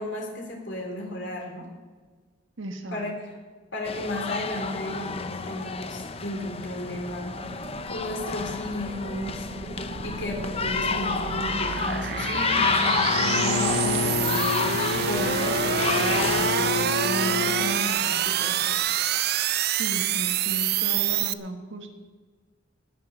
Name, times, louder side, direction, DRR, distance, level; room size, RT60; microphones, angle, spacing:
voice 1, 0.0-1.7 2.9-3.1 3.7-7.6 7.9-9.5 10.0-18.6, left 1 dB, 60° left, 0 dB, 3.8 m, -34 dB
voice 2, 2.6-3.0 19.8-21.9, right 1 dB, 70° right, 5 dB, 1.6 m, -35 dB
sound 1, 3.9-16.9, left 5 dB, 30° left, 0.7 m, -30 dB
sound 2, 7.4-21.3, right 10 dB, 50° right, 0.5 m, -28 dB
Bowed string instrument, 13.1-17.9, left 6 dB, 90° left, 0.6 m, -29 dB
20.0 x 7.0 x 6.6 m, 1.4 s
head